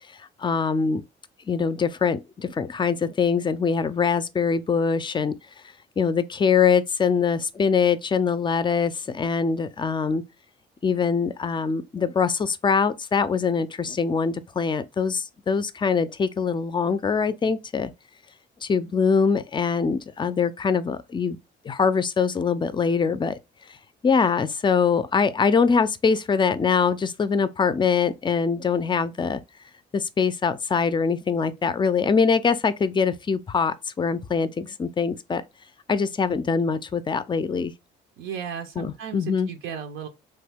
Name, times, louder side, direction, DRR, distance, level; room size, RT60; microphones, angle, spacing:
voice 1, 0.4-1.0 1.5-5.4 6.0-10.2 10.8-17.9 18.6-21.4 21.6-23.3 24.0-29.4 29.9-35.4 35.9-37.7 38.8-39.5, left 5 dB, 25° left, 0.4 m, -23 dB
voice 2, 38.2-40.1, right 7 dB, 90° right, 0.6 m, -35 dB
3.1 x 2.2 x 3.4 m
cardioid pair, 90°, 20 cm